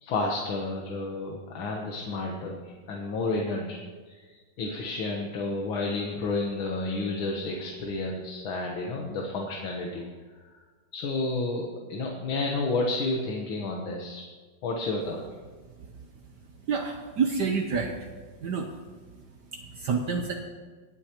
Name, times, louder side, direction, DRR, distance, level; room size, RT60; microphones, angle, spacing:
voice 1, 0.0-3.8 4.1-10.0 10.9-14.2 14.6-15.2, left 3 dB, 90° left, 0 dB, 2.0 m, -31 dB
voice 2, 16.7-17.9 18.4-18.7 19.7-20.3, right 5 dB, 65° right, 3 dB, 1.3 m, -27 dB
25.0 x 8.3 x 3.0 m, 1.4 s
omnidirectional pair, 2.2 m